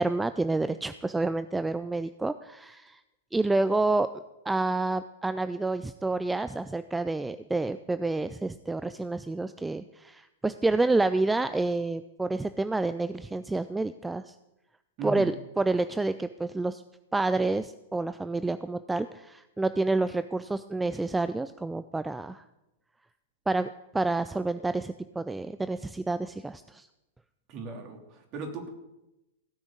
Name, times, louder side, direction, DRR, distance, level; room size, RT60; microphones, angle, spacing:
voice 1, 0.0-3.0 3.3-4.1 4.5-14.3 15.0-16.8 17.1-22.4 23.5-26.9, right 2 dB, 10° right, 12 dB, 0.4 m, -29 dB
voice 2, 15.0-15.3 27.5-28.7, right 3 dB, 40° right, 3 dB, 3.2 m, -38 dB
16.5 x 6.2 x 8.3 m, 0.94 s
figure-of-eight pair, 100°, 0 cm